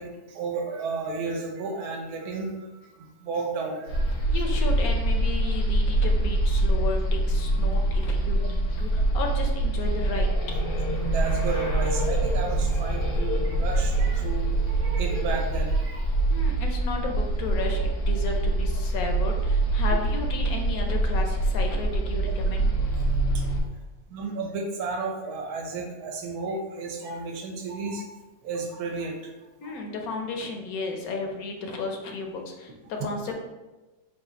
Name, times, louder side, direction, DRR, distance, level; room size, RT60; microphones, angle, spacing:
voice 1, 0.0-4.2 11.0-14.5 14.8-16.1 23.3-23.4 24.1-28.1 28.4-29.3 29.6-29.8 32.8-32.9, right 4 dB, 70° right, 1 dB, 1.2 m, -33 dB
sound 1, 3.9-23.6, right 2 dB, 85° left, 1.5 m, -25 dB
voice 2, 4.3-10.3 16.3-22.7 29.6-33.4, left 3 dB, 70° left, 2 dB, 1.0 m, -33 dB
4.0 x 2.4 x 3.9 m, 1.1 s
omnidirectional pair, 1.7 m